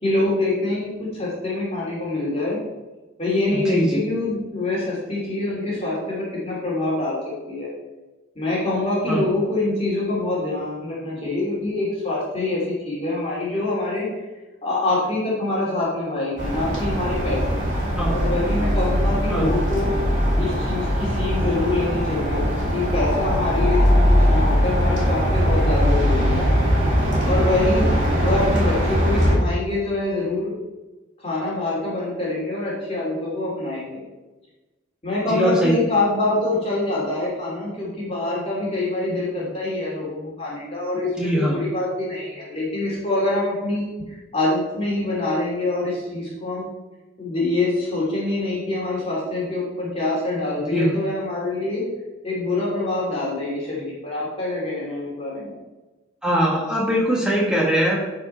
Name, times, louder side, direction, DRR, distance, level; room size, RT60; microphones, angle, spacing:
voice 1, 0.0-2.6 3.2-7.2 7.5-7.7 8.4-14.1 14.6-17.6 18.1-19.9 20.4-26.5 27.2-27.9 28.1-30.5 31.2-34.0 35.0-44.0 44.3-46.7 47.2-51.9 52.2-55.6, left 2 dB, 30° left, -6 dB, 2.5 m, -25 dB
voice 2, 3.7-4.0 9.1-9.2 18.0-18.1 19.3-19.5 25.6-25.7 28.3-28.4 35.3-35.7 41.2-41.6 50.7-50.9 56.2-58.0, equal, 5° right, -4 dB, 1.4 m, -21 dB
sound 1, 16.4-29.3, equal, 35° right, 3.2 m, -20 dB
10.5 x 4.9 x 4.4 m, 1.1 s
head